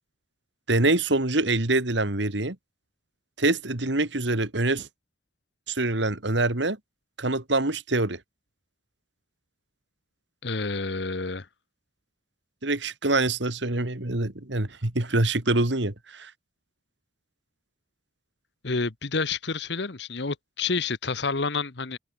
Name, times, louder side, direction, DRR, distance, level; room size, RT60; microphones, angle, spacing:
voice 1, 0.7-2.6 3.4-4.9 5.7-6.8 7.2-8.2 12.6-16.3, right 2 dB, 70° right, 2.3 m, -25 dB
voice 2, 10.4-11.5 18.6-22.0, left 4 dB, 65° left, 1.2 m, -29 dB
head